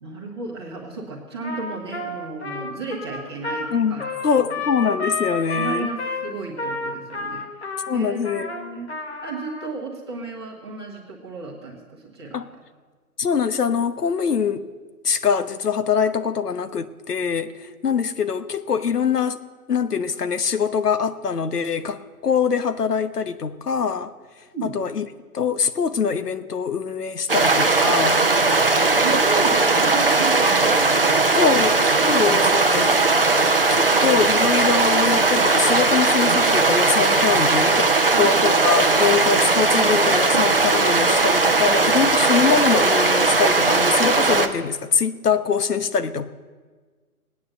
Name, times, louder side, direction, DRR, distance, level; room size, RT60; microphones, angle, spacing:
voice 1, 0.0-4.6 5.5-8.9 9.2-12.6 24.5-24.7 28.9-32.4 38.1-38.5, right 3 dB, 15° right, -4 dB, 1.6 m, -34 dB
Trumpet, 1.4-9.7, left 3 dB, 45° left, 1.6 m, -31 dB
voice 2, 3.7-5.9 7.9-8.5 12.3-12.5 13.2-14.6 15.0-19.4 19.7-24.1 24.6-25.1 25.3-28.3 31.3-31.8 32.1-33.0 33.7-46.3, left 6 dB, 85° left, 12 dB, 1.1 m, -23 dB
sound 1, 27.3-44.5, right 3 dB, 40° right, 0.7 m, -18 dB
18.0 x 9.3 x 7.9 m, 1.4 s
hypercardioid pair, 180°, 45 cm